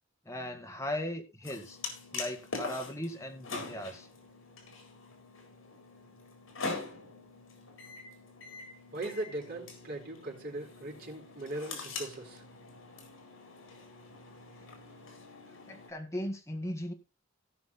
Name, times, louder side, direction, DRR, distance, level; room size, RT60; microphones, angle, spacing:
voice 1, 0.3-1.8 2.1-4.1 15.7-16.9, left 1 dB, 15° left, 1.8 m, -37 dB
sound 1, 1.4-15.9, left 3 dB, 70° left, 4.1 m, -44 dB
voice 2, 8.9-12.4, right 2 dB, 50° right, 4.4 m, -39 dB
17.0 x 6.0 x 4.2 m
head